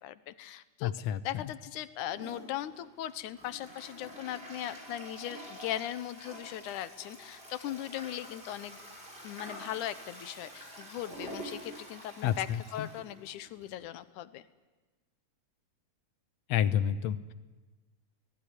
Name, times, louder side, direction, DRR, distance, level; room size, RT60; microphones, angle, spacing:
voice 1, 0.0-0.9 1.2-8.8 9.2-14.4, left 12 dB, 90° left, 13 dB, 2.4 m, -39 dB
voice 2, 0.8-1.2 12.2-12.9 16.5-17.3, left 10 dB, 70° left, 13 dB, 1.9 m, -29 dB
Toilet flush, 2.0-13.8, right 1 dB, 15° right, 6.3 m, -47 dB
24.0 x 19.0 x 9.9 m, 1.2 s
omnidirectional pair, 3.4 m